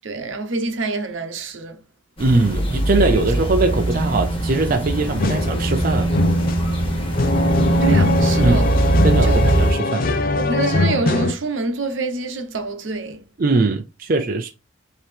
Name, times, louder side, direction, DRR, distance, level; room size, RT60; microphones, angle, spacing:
voice 1, 0.0-1.8 7.8-8.7 9.2-9.4 10.4-13.2, right 3 dB, 80° right, 0.9 m, -26 dB
sound 1, 2.2-9.7, right 1 dB, 30° left, 1.3 m, -21 dB
voice 2, 2.2-6.1 8.4-8.6 9.0-10.1 13.4-14.5, right 3 dB, 45° right, 0.5 m, -20 dB
sound 2, 5.2-11.3, left 2 dB, 50° left, 0.5 m, -21 dB
4.7 x 2.9 x 3.3 m
head